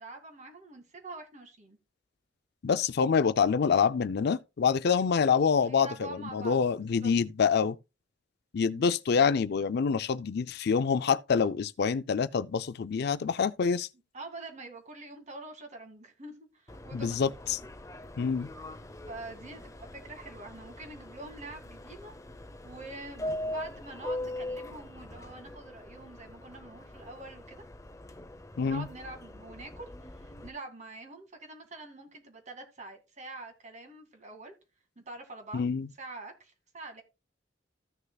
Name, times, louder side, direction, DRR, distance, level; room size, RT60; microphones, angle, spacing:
voice 1, 0.0-1.8 5.6-7.1 8.7-8.9 14.1-17.3 19.1-22.1 22.6-27.6 28.6-34.5 35.0-35.6 36.0-37.0, right 2 dB, 40° right, 2.1 m, -45 dB
voice 2, 2.6-7.8 8.5-13.9 16.9-17.6 18.2-18.5 28.6-28.9 35.5-35.9, left 6 dB, 60° left, 0.4 m, -26 dB
Subway metro underground, 16.7-30.5, left 1 dB, 15° left, 0.7 m, -42 dB
14.5 x 6.6 x 2.3 m
head